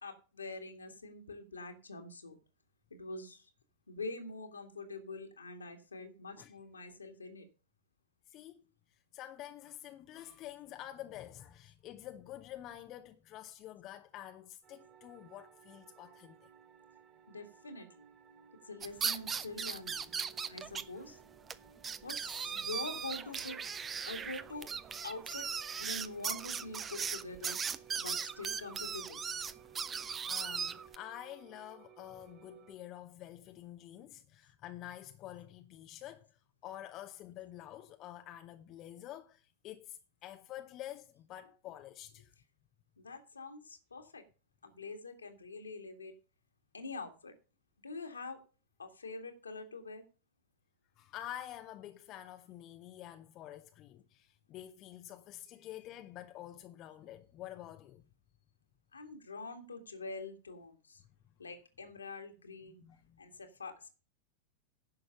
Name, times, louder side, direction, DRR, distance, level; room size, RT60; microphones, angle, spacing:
voice 1, 0.0-2.3 2.9-3.5 3.9-7.5 17.3-18.1 18.7-20.1 20.5-21.2 22.0-23.6 24.1-24.7 25.0-25.5 25.8-27.6 28.0-29.2 43.0-44.2 44.6-46.1 46.7-47.3 47.8-48.4 48.8-50.0 58.9-61.0 61.4-62.8 63.2-63.9, left 3 dB, 75° left, 2.0 m, -45 dB
voice 2, 8.3-8.6 9.1-16.5 30.2-42.3 51.0-58.0 61.0-61.1 62.8-63.2, left 12 dB, 35° left, 0.8 m, -48 dB
sound 1, 14.6-32.7, right 8 dB, 35° right, 3.4 m, -59 dB
sound 2, 18.8-20.8 21.1-21.2 21.5-21.6 21.8-31.0, right 6 dB, 20° right, 0.7 m, -38 dB
10.5 x 6.3 x 6.6 m
figure-of-eight pair, 90°, 0 cm